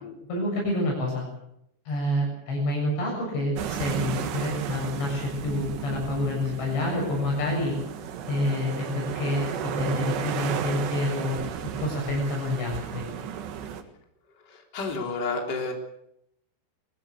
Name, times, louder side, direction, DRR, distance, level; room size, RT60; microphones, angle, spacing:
voice 1, 0.3-1.3 1.9-7.8 8.3-13.0, left 1 dB, 60° left, -2 dB, 9.5 m, -28 dB
sound 1, 3.6-13.8, right 8 dB, 65° right, 3.5 m, -34 dB
voice 2, 14.5-15.7, left 3 dB, 25° left, 2 dB, 3.4 m, -31 dB
22.5 x 17.0 x 8.2 m, 0.76 s
omnidirectional pair, 5.6 m